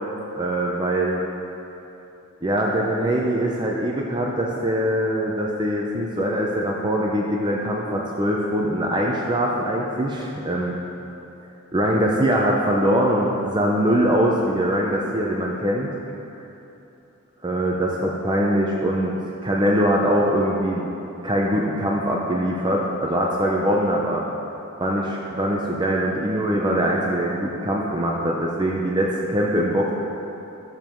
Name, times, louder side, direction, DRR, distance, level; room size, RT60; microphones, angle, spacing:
voice 1, 0.3-1.2 2.4-10.8 11.7-15.9 17.4-19.1 19.4-20.9 21.2-24.2 24.8-29.9, equal, 20° right, -2 dB, 0.7 m, -22 dB
12.5 x 7.2 x 4.5 m, 2.9 s
head